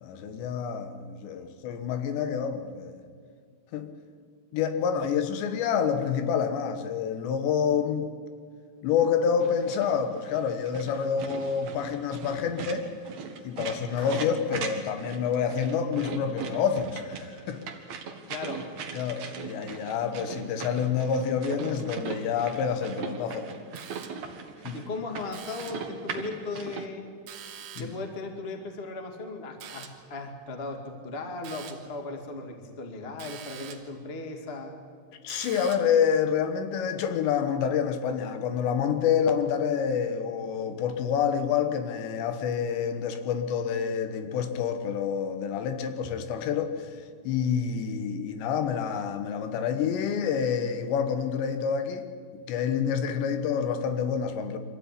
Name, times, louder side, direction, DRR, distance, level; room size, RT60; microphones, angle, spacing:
voice 1, 0.0-3.0 3.7-3.9 4.5-8.1 8.8-12.9 13.4-17.6 18.9-23.5 24.7-24.8 27.8-27.9 35.2-46.9 47.3-52.1 52.5-54.6, left 7 dB, 80° left, 3.5 m, -28 dB
sound 1, 9.4-26.9, right 6 dB, 55° right, 2.2 m, -39 dB
Clapping, 14.0-14.6, left 3 dB, 40° left, 5.2 m, -48 dB
voice 2, 18.3-18.6 24.7-27.1 27.8-34.8, left 3 dB, 25° left, 1.4 m, -37 dB
sound 2, 23.8-24.4 25.3-26.0 27.3-28.1 29.6-30.1 31.4-32.0 33.2-34.0 35.3-36.0, right 8 dB, 80° right, 3.9 m, -45 dB
25.0 x 14.5 x 9.8 m
omnidirectional pair, 5.0 m